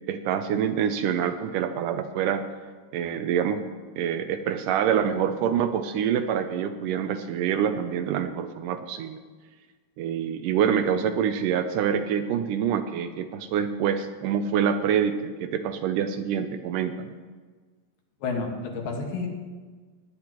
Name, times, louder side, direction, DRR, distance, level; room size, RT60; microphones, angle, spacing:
voice 1, 0.1-2.4 2.9-3.6 4.0-9.2 10.0-17.2, right 8 dB, 80° right, 9 dB, 2.0 m, -26 dB
voice 2, 18.2-19.3, left 4 dB, 80° left, 1 dB, 3.2 m, -30 dB
20.0 x 9.7 x 3.0 m, 1.4 s
omnidirectional pair, 4.0 m